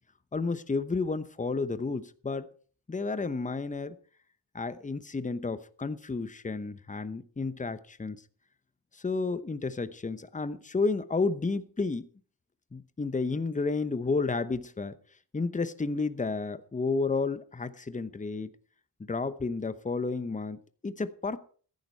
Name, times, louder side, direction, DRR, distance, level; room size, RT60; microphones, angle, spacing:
voice 1, 0.3-2.5 2.9-3.9 4.5-8.2 8.9-12.1 12.7-14.9 15.3-18.5 19.1-21.4, left 4 dB, 15° left, 13 dB, 0.9 m, -31 dB
14.5 x 10.5 x 4.6 m, 0.44 s
cardioid pair, 95°, 44 cm